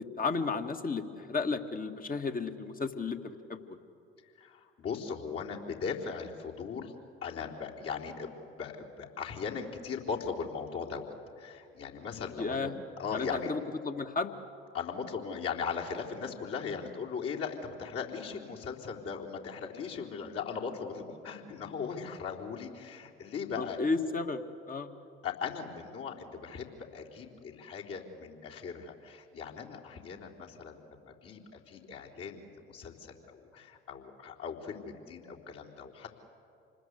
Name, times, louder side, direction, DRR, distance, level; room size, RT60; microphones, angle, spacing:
voice 1, 0.0-3.8 12.4-12.8 13.1-14.4 23.6-24.4 24.7-24.9, left 4 dB, 25° left, 7 dB, 1.9 m, -33 dB
voice 2, 4.4-7.0 7.2-12.7 13.0-13.5 14.7-23.8 25.2-36.1, left 6 dB, 45° left, -2 dB, 3.8 m, -39 dB
27.5 x 20.5 x 8.2 m, 2.6 s
figure-of-eight pair, 55°, 31 cm